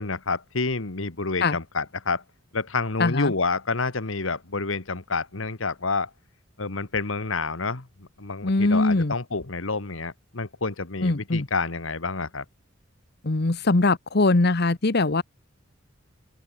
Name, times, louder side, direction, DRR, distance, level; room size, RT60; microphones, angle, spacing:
voice 1, 0.0-2.2 2.5-6.1 6.6-7.9 8.2-12.4, left 4 dB, 75° left, 1.6 m, -28 dB
voice 2, 3.0-3.3 8.4-9.1 11.0-11.5 13.2-15.2, left 2 dB, 55° left, 1.1 m, -21 dB
head